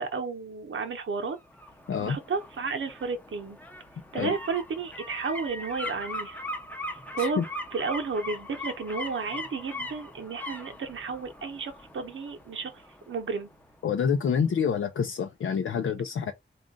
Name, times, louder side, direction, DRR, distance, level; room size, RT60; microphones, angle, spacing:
voice 1, 0.0-1.4 2.0-3.6 4.1-6.4 6.9-7.4 7.7-12.7 13.1-13.5, right 4 dB, 75° right, 0.9 m, -32 dB
sound 1, 1.3-14.1 14.5-14.6, left 1 dB, 10° left, 0.6 m, -40 dB
voice 2, 13.8-16.3, left 7 dB, 85° left, 0.5 m, -27 dB
3.7 x 2.4 x 3.6 m
wide cardioid pair, 120°, 20 cm